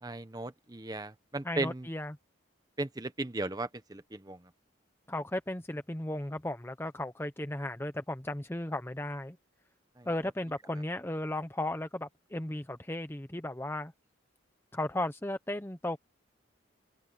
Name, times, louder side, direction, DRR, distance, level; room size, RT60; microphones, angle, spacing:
voice 1, 0.0-1.9 2.8-4.4 10.0-10.1, right 2 dB, 20° right, 0.8 m, -36 dB
voice 2, 1.4-2.2 5.1-9.4 10.1-13.9 14.7-16.0, left 1 dB, 10° left, 0.7 m, -35 dB
open air
head